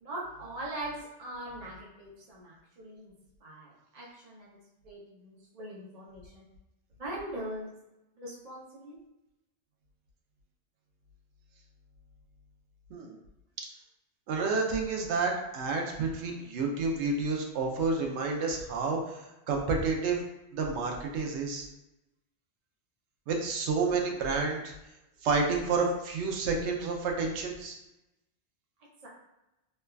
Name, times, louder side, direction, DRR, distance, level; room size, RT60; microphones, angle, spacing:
voice 1, 0.0-3.1 3.4-6.4 7.0-7.7 8.2-9.0 29.0-29.1, right 1 dB, 45° right, -5 dB, 0.5 m, -41 dB
voice 2, 14.3-20.2 20.5-21.7 23.3-24.7 25.2-27.8, right 4 dB, 80° right, 1 dB, 0.9 m, -30 dB
3.2 x 2.2 x 2.2 m, 0.93 s
omnidirectional pair, 1.2 m